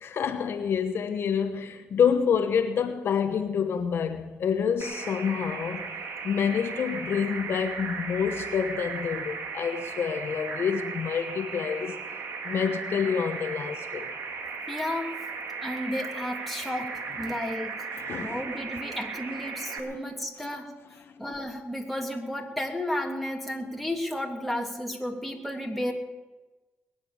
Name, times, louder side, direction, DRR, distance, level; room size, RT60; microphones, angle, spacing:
voice 1, 0.0-5.9 6.2-12.0 12.4-14.1 17.3-17.4 17.9-18.4 19.8-20.0, left 7 dB, 65° left, 1.1 m, -28 dB
sound 1, 4.8-19.8, right 4 dB, 70° right, 2.2 m, -36 dB
voice 2, 14.7-15.2 15.6-20.7 21.2-25.9, left 1 dB, ahead, 3.1 m, -33 dB
21.0 x 9.3 x 6.9 m
cardioid pair, 70°, 4 cm